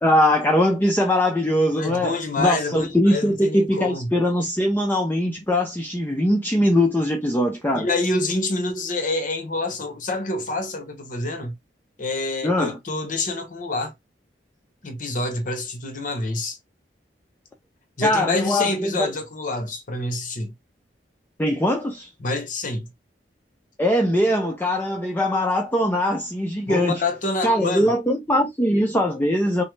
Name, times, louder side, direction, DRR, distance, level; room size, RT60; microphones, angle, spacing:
voice 1, 0.0-7.9 12.4-12.8 18.0-19.1 21.4-22.1 23.8-27.0 27.4-29.6, left 1 dB, 10° left, 0.5 m, -21 dB
voice 2, 1.7-4.1 7.7-11.6 12.0-13.9 14.8-16.6 18.0-20.5 22.2-22.9 26.7-27.9, left 2 dB, 50° left, 0.9 m, -27 dB
5.4 x 2.0 x 3.2 m
head